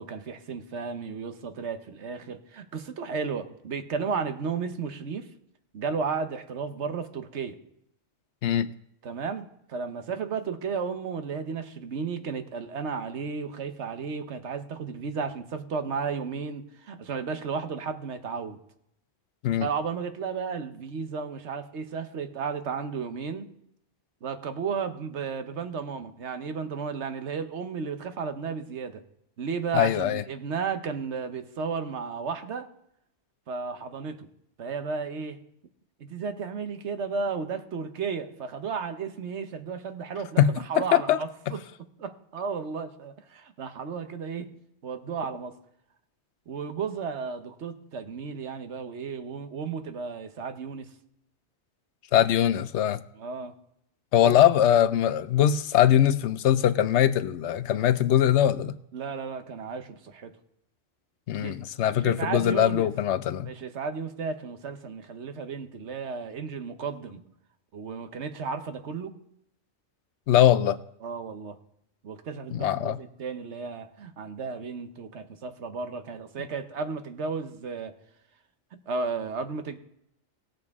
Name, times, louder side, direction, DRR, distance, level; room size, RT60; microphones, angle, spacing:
voice 1, 0.0-5.3 5.7-7.6 9.0-18.6 19.6-23.5 24.2-29.0 29.4-32.7 33.5-34.3 34.6-35.4 36.0-41.6 42.0-44.5 44.8-45.6 46.5-50.9 53.1-53.5 54.2-54.4 58.9-60.4 61.4-61.6 61.9-62.9 63.4-67.2 67.7-69.2 71.0-71.6 72.0-77.9 78.9-79.8, right 5 dB, 80° right, 1.2 m, -33 dB
voice 2, 29.7-30.2 40.4-40.5 40.9-41.2 52.1-53.0 54.1-58.7 61.3-63.5 70.3-70.8 72.5-73.0, left 11 dB, 80° left, 0.9 m, -22 dB
18.0 x 7.7 x 3.6 m
omnidirectional pair, 1.2 m